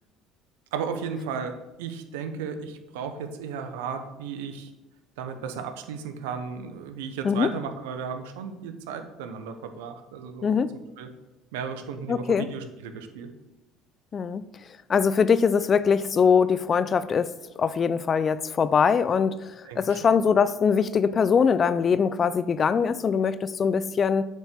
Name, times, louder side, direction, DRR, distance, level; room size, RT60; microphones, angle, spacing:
voice 1, 0.7-4.7 5.2-10.6 11.0-11.1 11.5-13.3 19.7-20.2, right 6 dB, 85° right, 8 dB, 0.9 m, -35 dB
voice 2, 10.4-10.8 12.1-12.5 14.1-14.4 14.9-17.3 17.6-19.4 19.8-24.2, left 6 dB, 40° left, 15 dB, 0.5 m, -22 dB
8.1 x 4.5 x 6.8 m, 1.0 s
supercardioid pair, 80°, 0 cm